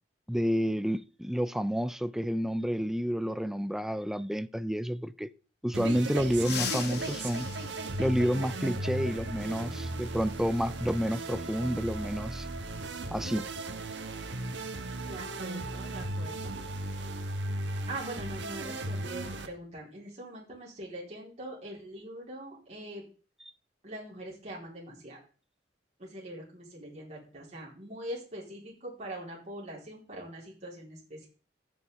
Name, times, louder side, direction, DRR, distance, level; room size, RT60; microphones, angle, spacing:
voice 1, 0.3-5.3 5.6-7.5 8.0-12.5 13.1-13.5, equal, ahead, 0.4 m, -30 dB
sound 1, 5.7-19.5, right 2 dB, 80° right, 1.3 m, -36 dB
sound 2, 6.3-8.8 10.4-10.5 11.7-11.8 13.5-13.6 14.0-14.2 14.7-16.9 17.1-17.4 17.8-18.2, left 8 dB, 60° left, 1.1 m, -41 dB
voice 2, 15.0-16.6 17.9-23.0 23.8-25.2 26.0-31.3, right 1 dB, 40° right, 4.0 m, -42 dB
15.0 x 6.8 x 3.6 m
head